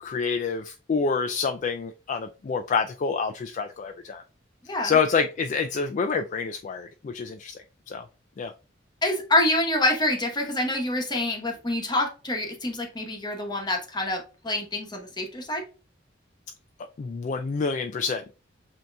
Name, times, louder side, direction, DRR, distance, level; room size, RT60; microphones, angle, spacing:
voice 1, 0.0-4.2 4.8-7.6 7.9-8.0 8.4-8.5 17.0-18.3, left 5 dB, 40° left, 0.3 m, -27 dB
voice 2, 4.7-5.0 9.0-15.6, left 1 dB, 20° left, 1.0 m, -26 dB
7.8 x 2.8 x 2.2 m
head